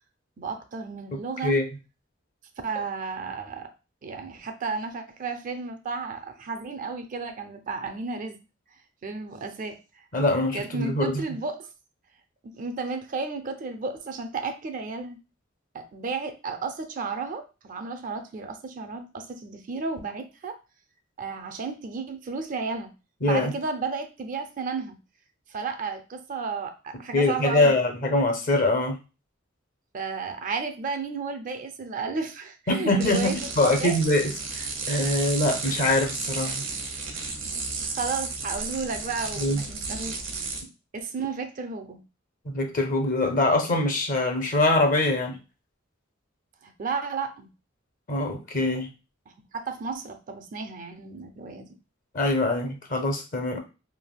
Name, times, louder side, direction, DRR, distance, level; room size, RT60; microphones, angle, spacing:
voice 1, 0.4-1.6 2.6-3.7 4.0-8.4 9.0-9.8 10.5-11.6 12.5-15.2 15.7-20.6 21.2-22.9 23.2-25.0 25.5-27.7 29.9-33.9 35.0-35.1 37.9-40.2 40.9-42.0 46.6-47.5 49.5-51.7, right 4 dB, 40° right, 7 dB, 0.4 m, -33 dB
voice 2, 1.1-1.6 10.1-11.2 23.2-23.5 27.1-29.0 32.7-36.6 39.4-39.6 42.5-45.4 48.1-48.9 52.1-53.6, left 2 dB, 40° left, 4 dB, 0.6 m, -24 dB
sound 1, 33.0-40.6, right 4 dB, 70° right, 0.8 m, -33 dB
3.3 x 2.6 x 2.2 m, 0.31 s
head